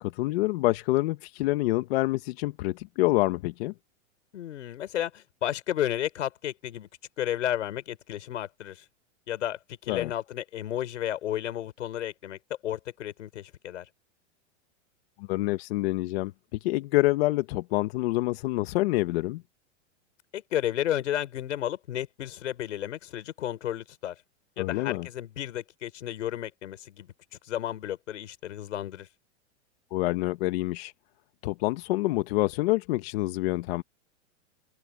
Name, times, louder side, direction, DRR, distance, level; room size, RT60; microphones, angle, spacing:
voice 1, 0.0-3.7 9.9-10.1 15.2-19.4 24.6-25.1 29.9-30.9 31.4-33.8, left 19 dB, 55° left, 1.1 m, -27 dB
voice 2, 4.3-6.9 7.2-8.8 9.3-13.9 20.3-24.2 24.6-27.1 27.4-29.1, left 11 dB, 90° left, 5.7 m, -32 dB
open air
supercardioid pair, 145°, 36 cm